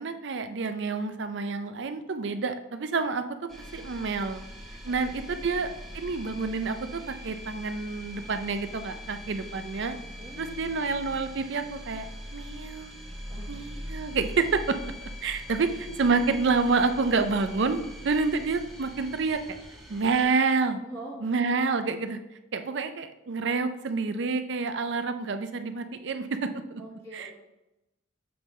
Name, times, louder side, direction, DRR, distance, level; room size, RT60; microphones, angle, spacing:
voice 1, 0.0-3.2 3.7-4.4 4.8-10.0 10.4-12.0 12.3-12.9 13.5-15.7 16.0-19.4 19.9-20.8 21.2-22.2 22.5-26.8 27.1-27.3, right 4 dB, 55° right, 9 dB, 0.5 m, -28 dB
sound 1, 3.5-20.2, equal, ahead, 1.0 m, -42 dB
voice 2, 5.2-5.7 10.2-10.5 13.3-13.7 15.3-15.9 20.8-21.5 26.8-27.3, right 1 dB, 20° left, -7 dB, 1.3 m, -45 dB
6.9 x 5.3 x 3.1 m, 0.94 s
head